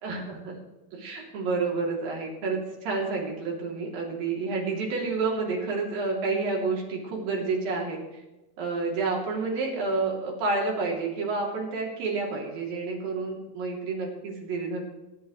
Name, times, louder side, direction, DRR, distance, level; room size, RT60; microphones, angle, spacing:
voice 1, 0.0-0.6 0.9-8.2 8.6-14.8, right 3 dB, 65° right, -2 dB, 4.8 m, -29 dB
22.0 x 11.5 x 3.3 m, 1.0 s
omnidirectional pair, 4.4 m